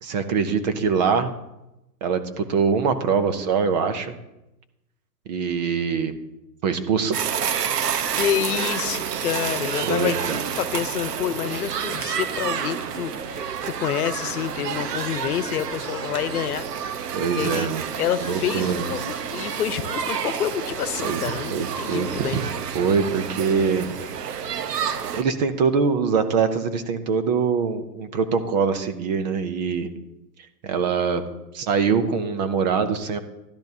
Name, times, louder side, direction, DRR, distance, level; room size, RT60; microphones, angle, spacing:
voice 1, 0.0-1.3 2.0-4.2 5.3-6.1 6.6-7.2 9.8-10.4 17.1-17.8 18.2-18.9 21.0-21.2 21.5-22.4 22.7-23.9 25.1-29.9 30.6-31.2 31.5-33.2, right 5 dB, 30° right, 10 dB, 0.6 m, -23 dB
sound 1, 7.1-25.2, right 8 dB, 80° right, 1.0 m, -29 dB
voice 2, 8.2-16.8 17.3-22.4, left 10 dB, 65° left, 13 dB, 1.0 m, -28 dB
13.0 x 12.0 x 2.8 m, 0.92 s
hypercardioid pair, 135°, 48 cm